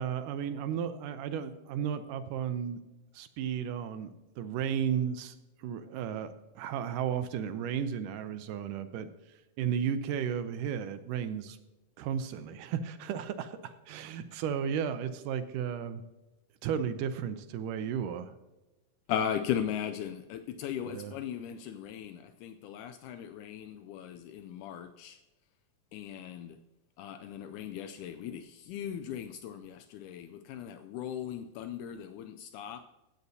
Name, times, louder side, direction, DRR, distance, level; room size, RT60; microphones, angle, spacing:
voice 1, 0.0-2.8 3.1-9.1 9.6-11.6 12.0-16.0 16.6-18.3 20.9-21.1, right 8 dB, 80° right, 10 dB, 2.0 m, -34 dB
voice 2, 19.1-25.2 25.9-26.6 27.0-32.8, left 9 dB, 85° left, 8 dB, 1.8 m, -37 dB
16.0 x 8.3 x 2.7 m, 1.0 s
omnidirectional pair, 4.1 m